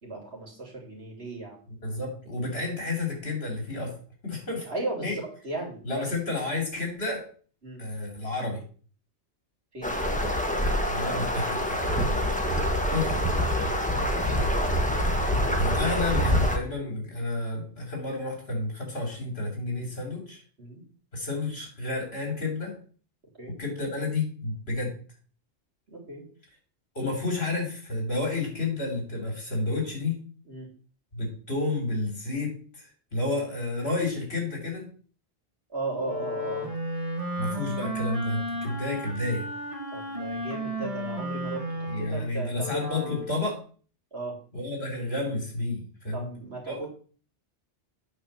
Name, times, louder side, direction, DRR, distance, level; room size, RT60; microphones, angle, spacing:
voice 1, 0.0-1.6 4.6-6.1 7.6-7.8 9.7-10.0 13.6-14.9 20.6-20.8 23.4-23.6 25.9-26.2 30.5-30.7 35.7-36.7 39.9-41.6 42.0-43.2 44.1-44.4 46.1-46.9, right 2 dB, 65° right, -1 dB, 3.2 m, -36 dB
voice 2, 1.7-3.9 4.2-4.7 5.0-5.2 5.8-7.3 7.8-8.6 10.9-12.2 12.9-13.2 15.5-20.4 21.1-22.7 23.6-24.9 27.0-30.2 31.1-34.9 37.4-39.5 41.9-43.6 44.5-46.3 46.7-46.8, left 2 dB, 60° left, 0 dB, 3.5 m, -31 dB
sound 1, 9.8-16.6, equal, 5° left, 1.3 m, -26 dB
Wind instrument woodwind instrument, 36.0-43.4, equal, 30° right, 1.5 m, -33 dB
9.0 x 4.4 x 6.6 m, 0.43 s
omnidirectional pair, 1.2 m